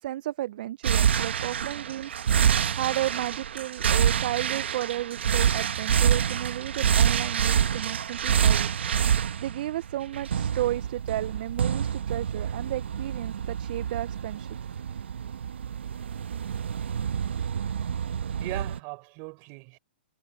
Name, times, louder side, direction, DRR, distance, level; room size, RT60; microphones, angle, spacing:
voice 1, 0.0-8.7 9.4-14.6, right 14 dB, 55° right, 0.5 m, -33 dB
sound 1, 0.8-18.8, right 8 dB, 75° right, 1.3 m, -27 dB
voice 2, 18.4-19.8, right 31 dB, 35° right, 5.1 m, -41 dB
hypercardioid pair, 140°, 6 cm